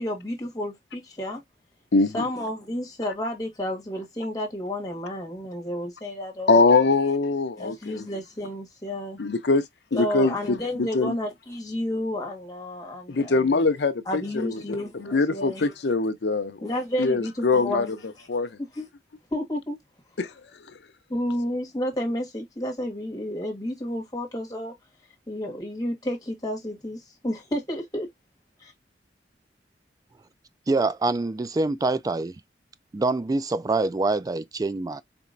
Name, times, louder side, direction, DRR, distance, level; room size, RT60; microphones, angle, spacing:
voice 1, 0.0-1.4 2.1-6.8 7.6-9.2 9.9-13.4 14.1-15.7 16.6-17.9 18.7-18.9 19.3-19.8 21.1-24.7 25.3-28.1 28.6-28.7, left 1 dB, 20° left, 1.5 m, -31 dB
voice 2, 1.9-2.2 6.5-8.0 9.2-9.6 9.9-11.2 13.1-16.7 17.0-18.0 18.3-18.6 20.2-20.3, left 3 dB, 70° left, 0.6 m, -23 dB
voice 3, 30.7-32.4 32.9-35.0, right 3 dB, 20° right, 0.3 m, -25 dB
4.4 x 2.9 x 2.5 m
head